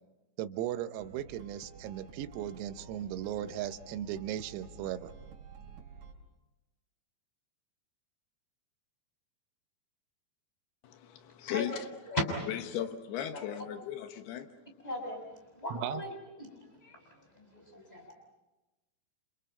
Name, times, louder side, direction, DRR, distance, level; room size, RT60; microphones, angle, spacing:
voice 1, 0.4-5.1 15.7-16.0, right 11 dB, 85° right, 3.7 m, -37 dB
sound 1, 1.0-6.1, right 3 dB, 65° right, 5.9 m, -51 dB
voice 2, 10.8-11.8 12.5-14.5, left 11 dB, 70° left, 2.6 m, -37 dB
voice 3, 14.8-15.2 15.5-16.1 16.4-17.0 17.4-18.1, left 1 dB, 10° left, 5.7 m, -37 dB
29.0 x 29.0 x 5.6 m
omnidirectional pair, 6.0 m